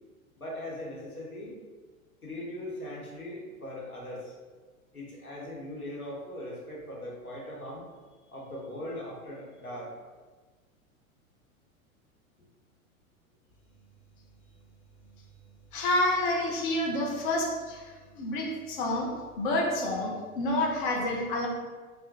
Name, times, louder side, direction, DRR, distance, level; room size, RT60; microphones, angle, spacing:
voice 1, 0.4-1.6 2.2-4.3 4.9-7.9 8.3-9.9, left 1 dB, 85° left, -4 dB, 0.9 m, -40 dB
voice 2, 15.7-21.5, left 1 dB, 40° left, 0 dB, 0.5 m, -29 dB
3.3 x 2.1 x 2.6 m, 1.4 s
figure-of-eight pair, 90°, 42 cm